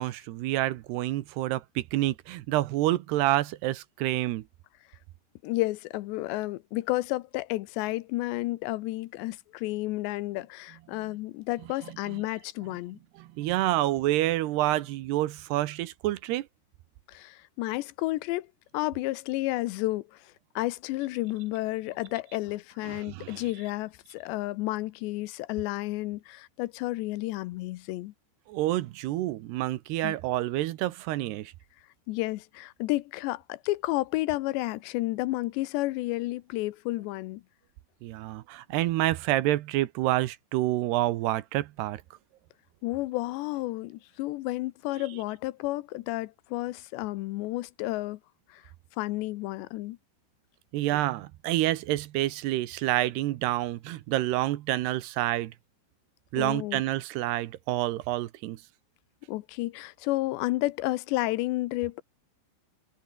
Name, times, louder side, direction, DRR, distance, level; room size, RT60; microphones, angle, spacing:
voice 1, 0.0-4.4 13.2-16.5 22.8-23.4 28.5-31.5 38.0-42.0 50.7-55.5 56.3-58.6, right 15 dB, 75° right, 2.9 m, -28 dB
voice 2, 5.4-13.0 17.1-18.5 18.7-28.1 30.0-30.1 32.1-37.4 42.8-48.2 48.5-48.6 49.0-50.0 56.4-56.8 59.3-62.0, left 19 dB, 85° left, 3.0 m, -31 dB
omnidirectional pair, 5.0 m